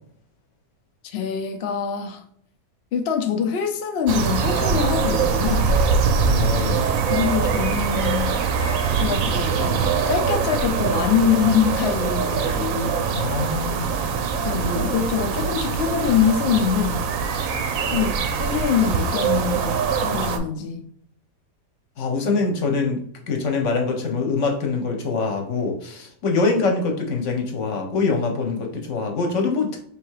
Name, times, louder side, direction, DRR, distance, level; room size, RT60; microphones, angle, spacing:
voice 1, 1.0-2.2 2.9-5.8 7.1-8.4 8.9-13.0 14.4-17.0 17.9-20.8, left 8 dB, 80° left, 0.5 m, -24 dB
sound 1, 4.1-20.4, right 5 dB, 65° right, 0.9 m, -23 dB
voice 2, 6.1-6.8 13.0-13.9 22.0-23.0 23.3-29.8, left 4 dB, 50° left, 1.1 m, -24 dB
3.3 x 3.1 x 4.7 m
omnidirectional pair, 1.8 m